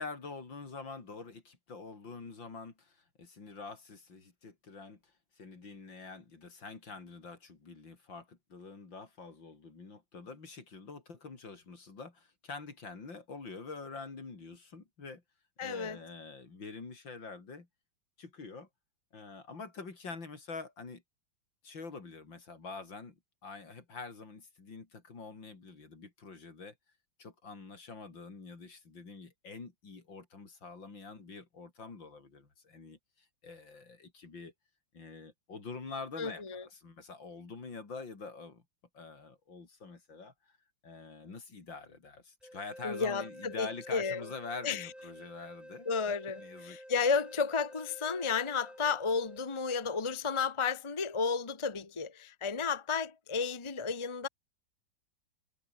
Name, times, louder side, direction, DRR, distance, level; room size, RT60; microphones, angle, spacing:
voice 1, 0.0-5.0 5.4-15.2 15.6-17.7 18.2-18.7 19.1-21.0 21.6-26.7 27.2-34.5 34.9-38.6 38.9-40.6 40.8-45.9 46.4-46.8, left 4 dB, 70° left, 4.5 m, -46 dB
voice 2, 15.6-16.0 36.2-36.6 42.8-44.3 44.6-44.9 45.8-54.3, left 5 dB, 20° left, 1.1 m, -32 dB
sound 1, 42.4-50.0, equal, ahead, 1.9 m, -51 dB
omnidirectional pair, 2.1 m